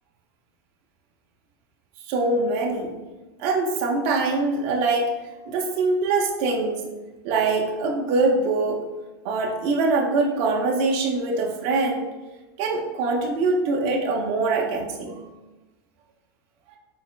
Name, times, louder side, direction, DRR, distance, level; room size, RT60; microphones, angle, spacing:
voice 1, 2.1-2.9 3.4-5.1 5.5-6.9 7.2-8.8 9.2-12.1 12.6-15.3, right 3 dB, 55° right, 0 dB, 0.6 m, -23 dB
4.2 x 4.1 x 2.4 m, 1.2 s
supercardioid pair, 125°, 14 cm